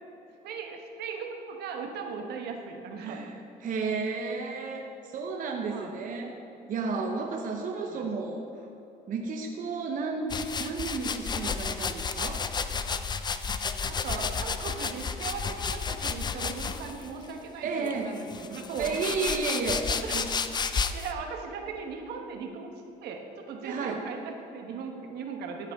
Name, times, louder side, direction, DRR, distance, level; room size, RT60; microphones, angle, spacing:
voice 1, 0.4-3.3 5.7-5.9 7.8-8.1 13.8-19.0 19.9-20.3 20.9-22.7 23.0-25.7, right 5 dB, 75° right, 3 dB, 1.2 m, -38 dB
voice 2, 3.0-6.3 6.7-8.4 9.1-12.5 17.6-18.1 18.8-19.9 20.1-20.3 23.6-24.0, right 4 dB, 50° right, 2 dB, 0.9 m, -32 dB
sound 1, 10.3-17.1 17.9-21.1, left 5 dB, 25° left, 0.4 m, -32 dB
13.5 x 8.2 x 3.6 m, 3.0 s
cardioid pair, 110°, 17 cm